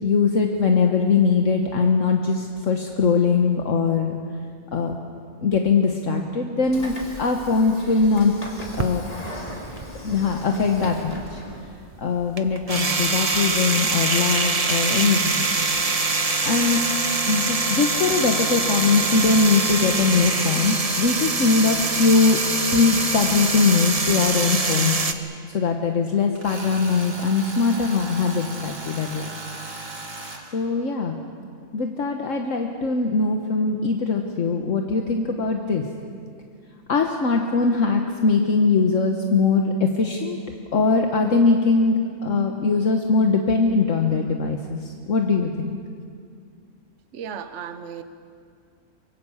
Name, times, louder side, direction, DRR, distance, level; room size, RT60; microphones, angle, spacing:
voice 1, 0.0-4.2 4.7-5.0 5.4-8.3 8.7-9.1 10.0-11.4 12.0-15.5 16.4-16.8 17.3-22.4 22.7-25.1 25.5-29.3 30.5-31.2 31.7-35.8 36.9-40.4 40.7-45.8, left 4 dB, 65° left, 1.6 m, -21 dB
Train / Sliding door, 6.6-11.7, left 1 dB, 25° left, 2.9 m, -38 dB
sound 1, 8.6-10.4 10.7-25.1, right 3 dB, 30° right, 1.1 m, -24 dB
Tools, 26.4-30.4, right 2 dB, 80° right, 3.4 m, -37 dB
voice 2, 47.1-48.0, right 7 dB, 60° right, 1.2 m, -35 dB
25.0 x 23.0 x 7.2 m
omnidirectional pair, 1.4 m